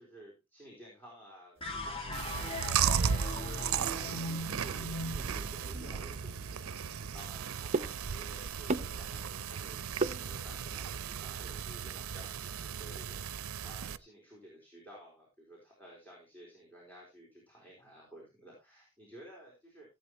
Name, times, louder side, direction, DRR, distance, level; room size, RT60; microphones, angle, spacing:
voice 1, 0.0-3.1 3.5-7.5 7.7-9.9 10.2-20.0, right 1 dB, 10° left, -3 dB, 4.4 m, -54 dB
sound 1, 1.6-8.0, left 1 dB, 25° left, 1.9 m, -41 dB
Chewing mastication, 2.1-14.0, right 7 dB, 80° right, 0.6 m, -36 dB
sound 2, 5.7-10.8, right 3 dB, 30° right, 0.7 m, -39 dB
16.5 x 8.4 x 3.0 m, 0.27 s
head